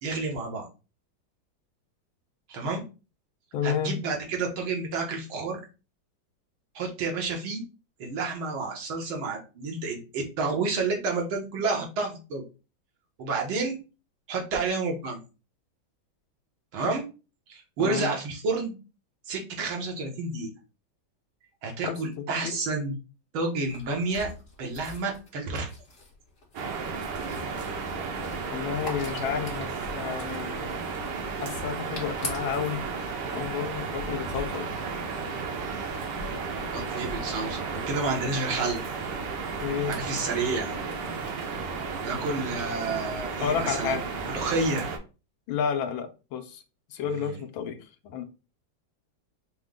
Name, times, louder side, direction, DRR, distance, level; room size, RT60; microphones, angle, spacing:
voice 1, 0.0-0.7 2.5-2.8 3.6-5.6 6.8-7.6 8.0-12.4 13.2-13.8 14.3-15.2 16.7-17.0 17.5-18.7 19.3-20.5 21.6-23.0 23.3-24.3 24.6-25.7 36.7-38.8 39.9-40.7 42.0-44.9 47.1-47.4, right 3 dB, 85° right, 1.9 m, -30 dB
voice 2, 3.5-4.0 17.8-18.1 21.8-22.5 28.4-30.8 31.4-32.8 33.3-34.7 39.6-40.0 43.4-44.1 45.5-46.6 46.9-48.2, left 7 dB, 80° left, 1.4 m, -31 dB
sound 1, 23.6-32.7, left 2 dB, 45° left, 1.5 m, -44 dB
sound 2, 26.5-45.0, right 4 dB, 70° right, 1.3 m, -33 dB
5.2 x 2.2 x 3.6 m
omnidirectional pair, 2.1 m